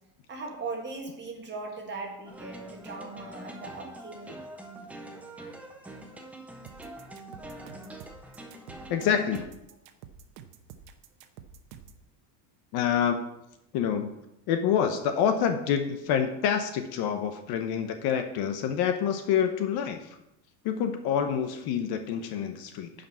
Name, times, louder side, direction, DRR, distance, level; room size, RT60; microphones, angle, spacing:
voice 1, 0.3-4.4, right 3 dB, 20° right, 2 dB, 1.7 m, -39 dB
sound 1, 2.3-9.5, right 1 dB, 5° right, 0.3 m, -44 dB
sound 2, 6.7-12.0, right 8 dB, 85° right, 1.1 m, -48 dB
voice 2, 8.9-9.5 12.7-13.2 13.7-14.1 14.5-20.2 20.6-22.9, left 8 dB, 50° left, 7 dB, 0.9 m, -27 dB
10.0 x 5.3 x 5.4 m, 0.85 s
supercardioid pair, 145°, 49 cm